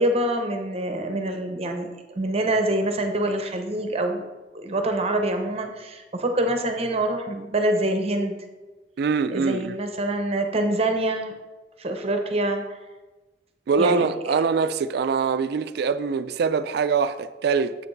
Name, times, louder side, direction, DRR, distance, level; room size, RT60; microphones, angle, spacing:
voice 1, 0.0-4.2 4.5-8.4 9.3-11.3 11.8-12.6 13.7-14.4, right 1 dB, 35° right, 0.8 m, -25 dB
voice 2, 9.0-9.8 13.7-17.8, right 5 dB, 65° right, 0.3 m, -23 dB
7.7 x 5.8 x 3.9 m
head